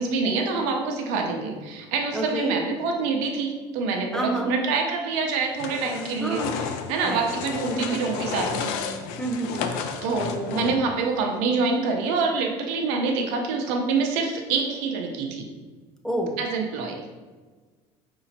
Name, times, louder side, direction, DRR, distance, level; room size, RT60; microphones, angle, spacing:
voice 1, 0.0-8.9 10.0-15.5 16.4-17.1, right 4 dB, 75° right, 2 dB, 0.7 m, -26 dB
voice 2, 2.1-2.6 4.1-4.5 6.2-6.6 7.0-7.3 7.7-8.0 9.2-9.7 16.0-16.4, right 1 dB, 5° left, 1 dB, 0.5 m, -29 dB
sound 1, 5.6-11.0, left 6 dB, 80° left, 0.4 m, -32 dB
5.1 x 2.8 x 2.8 m, 1.4 s
cardioid pair, 120°, 13 cm